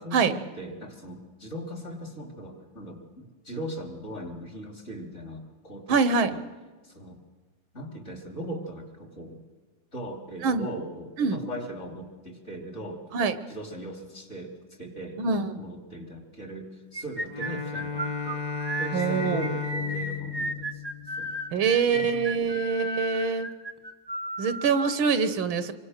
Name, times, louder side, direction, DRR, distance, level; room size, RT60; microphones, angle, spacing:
voice 1, 0.0-6.4 6.8-7.2 7.7-9.4 9.9-13.0 13.5-18.5 18.8-21.3 21.6-22.6, right 1 dB, 35° left, 5 dB, 3.7 m, -39 dB
voice 2, 5.9-6.3 10.4-10.7 11.2-11.4 13.1-13.4 15.2-15.5 18.9-19.5 21.5-23.5 24.4-25.7, right 5 dB, 75° right, 12 dB, 1.9 m, -24 dB
sound 1, 16.9-25.0, right 1 dB, 15° right, 1.2 m, -34 dB
Bowed string instrument, 17.2-21.6, left 6 dB, 55° left, 2.6 m, -34 dB
26.0 x 24.0 x 6.6 m, 1.4 s
omnidirectional pair, 2.3 m